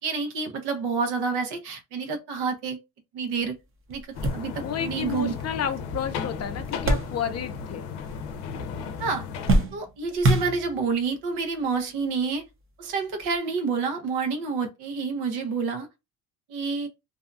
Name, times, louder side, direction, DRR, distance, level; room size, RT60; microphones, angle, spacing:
voice 1, 0.0-2.8 3.1-3.6 3.9-4.0 4.3-5.3 9.0-9.2 9.7-12.4 12.8-15.9 16.5-16.9, right 5 dB, 85° right, 0.9 m, -28 dB
sound 1, 3.4-3.5 3.9-7.7 7.9-8.7 9.0-11.0 11.8-11.9 13.2-13.3, right 1 dB, 35° right, 0.7 m, -27 dB
sound 2, 4.1-9.6, left 6 dB, 90° left, 0.6 m, -35 dB
voice 2, 4.6-7.9, left 8 dB, 40° left, 0.5 m, -31 dB
2.7 x 2.2 x 2.5 m
cardioid pair, 115°, 39 cm